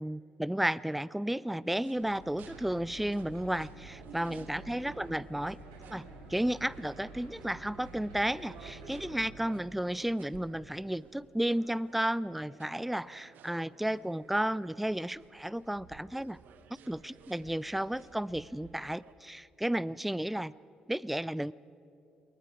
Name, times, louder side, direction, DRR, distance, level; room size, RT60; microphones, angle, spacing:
voice 1, 0.0-5.6 5.9-16.4 16.9-20.5 20.9-21.5, right 1 dB, 5° right, 22 dB, 0.4 m, -33 dB
sound 1, 1.7-19.1, right 6 dB, 60° right, 1.3 m, -56 dB
sound 2, 1.9-9.3, right 2 dB, 80° right, 6.0 m, -50 dB
28.5 x 21.5 x 4.8 m, 2.7 s
figure-of-eight pair, 45°, 4 cm